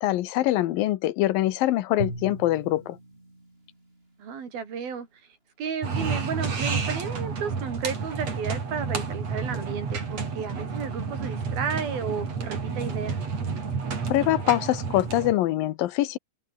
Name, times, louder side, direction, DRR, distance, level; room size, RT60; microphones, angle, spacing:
voice 1, 0.0-3.0 14.1-16.2, left 15 dB, 80° left, 2.7 m, -24 dB
Drum, 2.0-4.4, right 1 dB, 15° right, 6.0 m, -38 dB
voice 2, 4.2-5.1 5.6-13.2, right 6 dB, 90° right, 6.0 m, -33 dB
sound 1, 5.8-15.3, right 5 dB, 45° right, 5.1 m, -30 dB
open air
omnidirectional pair, 4.1 m